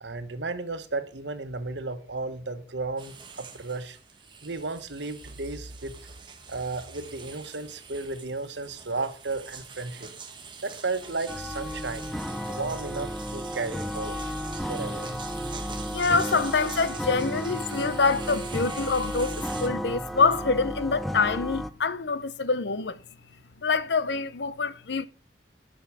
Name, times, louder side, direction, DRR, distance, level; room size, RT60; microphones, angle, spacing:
voice 1, 0.0-4.0 4.4-6.0 6.5-10.1 10.6-12.1 12.5-14.2 14.7-15.1, right 3 dB, 85° right, 1.3 m, -34 dB
sound 1, 3.0-19.7, right 5 dB, 25° right, 1.3 m, -44 dB
sound 2, 11.3-21.7, equal, ahead, 0.5 m, -33 dB
voice 2, 15.8-23.0 23.6-25.0, left 4 dB, 75° left, 0.8 m, -26 dB
10.5 x 6.2 x 6.2 m
head